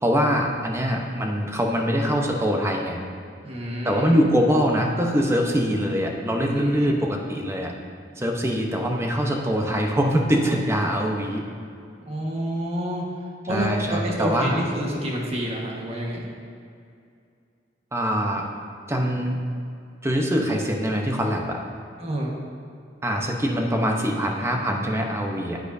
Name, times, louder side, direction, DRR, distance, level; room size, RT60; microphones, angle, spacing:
voice 1, 0.0-3.0 3.8-7.7 8.2-11.4 13.5-14.6 17.9-18.5 18.9-19.4 20.0-21.6 23.0-25.6, equal, 15° right, 1 dB, 0.9 m, -23 dB
voice 2, 3.4-4.2 6.5-7.0 12.1-13.0 13.5-16.3 22.0-22.4, right 1 dB, 35° right, -2 dB, 1.5 m, -28 dB
10.0 x 9.0 x 2.7 m, 2.4 s
head